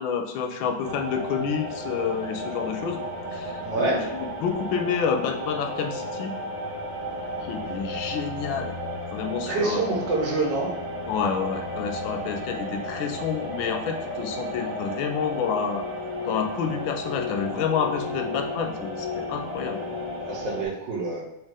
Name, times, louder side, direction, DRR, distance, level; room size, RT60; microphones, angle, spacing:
voice 1, 0.0-3.0 3.3-6.3 7.4-8.7 9.1-10.0 11.1-15.9 16.3-19.8, left 7 dB, 85° left, 4 dB, 1.4 m, -29 dB
sound 1, 0.8-20.7, left 1 dB, 25° right, 0.9 m, -33 dB
voice 2, 3.6-4.0 9.5-10.7 20.2-21.2, right 3 dB, 70° right, -2 dB, 1.7 m, -26 dB
4.6 x 3.1 x 3.5 m, 0.93 s
omnidirectional pair, 2.1 m